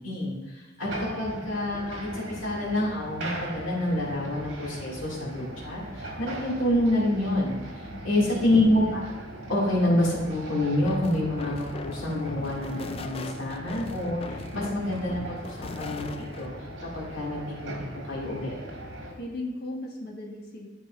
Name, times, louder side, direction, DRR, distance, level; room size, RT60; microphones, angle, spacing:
voice 1, 0.0-9.1 9.5-16.5 16.9-18.5, left 1 dB, 85° left, -6 dB, 2.3 m, -27 dB
sound 1, 0.8-19.1, right 1 dB, 60° right, 1.9 m, -40 dB
voice 2, 7.9-8.4 19.1-20.7, left 1 dB, 55° left, -1 dB, 1.5 m, -37 dB
sound 2, 10.8-16.5, left 3 dB, 30° left, 0.3 m, -40 dB
12.0 x 5.3 x 2.5 m, 1.2 s
head